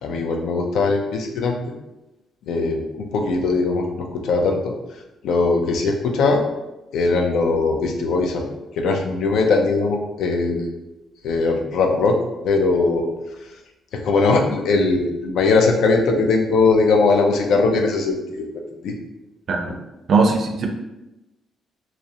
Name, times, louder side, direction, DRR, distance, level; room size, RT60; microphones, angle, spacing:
voice 1, 0.0-1.6 2.5-4.7 5.2-6.4 6.9-8.5 8.7-10.7 11.2-12.2 12.4-13.1 13.9-18.5 18.8-18.9, left 3 dB, 80° left, 2 dB, 0.4 m, -20 dB
voice 2, 20.1-20.7, right 4 dB, 55° right, 3 dB, 0.4 m, -18 dB
2.4 x 2.1 x 2.7 m, 0.98 s
cardioid pair, 90°, 0 cm